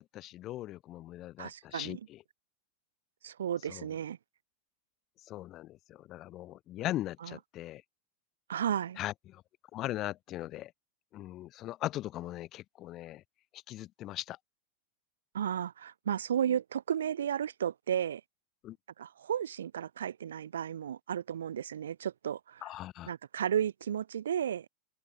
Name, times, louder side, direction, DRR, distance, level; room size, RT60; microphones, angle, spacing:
voice 1, 0.0-2.2 3.6-3.9 5.2-7.8 9.0-9.4 9.7-10.7 11.1-13.2 13.5-14.4 18.6-18.8 22.6-23.1, left 15 dB, 35° left, 3.3 m, -39 dB
voice 2, 1.4-2.0 3.2-4.2 7.2-7.3 8.5-9.0 15.3-18.2 19.0-22.6 23.1-24.7, right 9 dB, 65° right, 2.0 m, -33 dB
open air
figure-of-eight pair, 90°, 0 cm